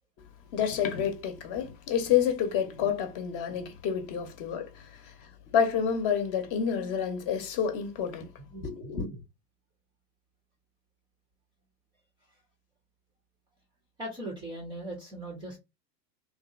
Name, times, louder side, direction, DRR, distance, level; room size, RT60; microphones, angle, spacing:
voice 1, 0.5-8.3 8.6-9.1, left 8 dB, 40° left, 0.8 m, -29 dB
voice 2, 8.5-9.2 14.0-15.6, right 1 dB, 10° right, 0.4 m, -39 dB
2.8 x 2.3 x 2.3 m
hypercardioid pair, 95°, 49 cm